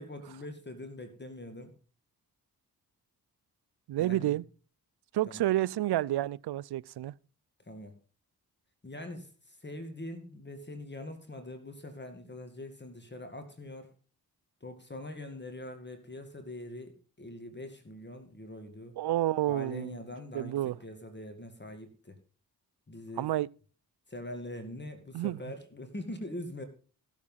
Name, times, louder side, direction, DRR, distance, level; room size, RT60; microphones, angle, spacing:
voice 1, 0.0-1.7 4.0-4.4 5.3-5.4 7.6-7.9 8.8-13.9 14.6-19.0 19.5-22.2 22.9-23.3 24.1-26.6, left 1 dB, 25° left, 2.2 m, -43 dB
voice 2, 3.9-4.4 5.1-7.1 19.0-20.0 20.3-20.8 23.2-23.5 25.1-25.4, right 14 dB, 80° right, 0.5 m, -29 dB
15.0 x 7.3 x 5.6 m
cardioid pair, 65°, 39 cm